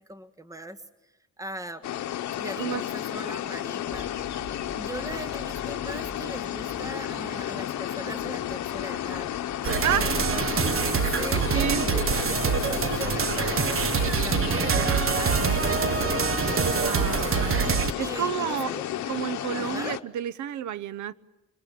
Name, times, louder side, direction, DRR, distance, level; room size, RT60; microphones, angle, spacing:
voice 1, 0.1-0.8 1.4-4.4 4.7-9.4 9.9-18.8 19.5-20.0, right 1 dB, 10° right, 1.6 m, -40 dB
sound 1, 1.8-20.0, left 12 dB, 65° left, 1.0 m, -32 dB
sound 2, 3.8-10.6, equal, 30° right, 3.6 m, -46 dB
sound 3, 9.6-17.9, right 6 dB, 45° right, 1.3 m, -25 dB
voice 2, 9.8-10.2 11.1-11.2 11.5-11.9 13.3-13.4 16.8-17.5 18.0-18.7 19.1-21.1, right 10 dB, 75° right, 0.9 m, -30 dB
25.5 x 21.0 x 8.6 m
cardioid pair, 90°, 30 cm